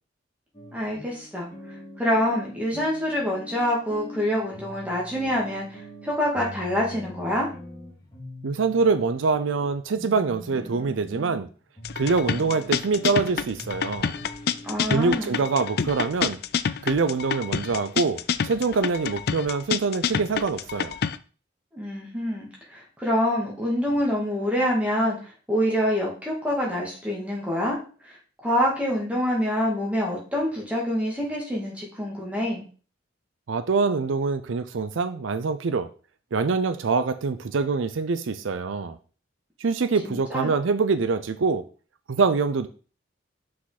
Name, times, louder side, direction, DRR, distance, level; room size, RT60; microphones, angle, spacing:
sound 1, 0.5-16.8, equal, 20° left, 2.4 m, -43 dB
voice 1, 0.7-1.5 2.0-7.5 14.6-15.4 21.7-25.2 25.5-27.8 28.4-32.6 40.0-40.5, equal, 5° right, -3 dB, 2.2 m, -26 dB
voice 2, 8.4-11.5 12.0-14.1 14.9-16.4 16.8-20.9 33.5-35.9 36.3-39.0 39.6-41.6 42.1-42.7, right 4 dB, 75° right, 12 dB, 0.5 m, -24 dB
sound 2, 11.8-21.2, left 7 dB, 50° left, 0.4 m, -28 dB
5.8 x 5.1 x 4.1 m, 0.38 s
head